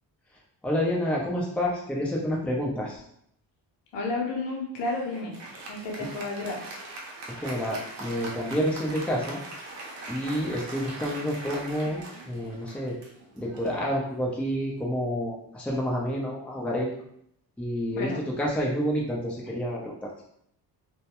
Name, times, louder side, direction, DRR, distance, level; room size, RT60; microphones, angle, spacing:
voice 1, 0.6-3.0 7.4-9.4 10.1-13.0 13.3-17.0 17.6-18.1 18.4-20.1, equal, 5° left, -3 dB, 0.6 m, -29 dB
voice 2, 3.9-5.3 5.7-7.0 17.9-18.2, left 3 dB, 85° left, -1 dB, 0.8 m, -32 dB
Applause, 4.8-14.6, right 2 dB, 80° right, 0.7 m, -41 dB
2.2 x 2.1 x 2.9 m, 0.70 s
cardioid pair, 70°, 43 cm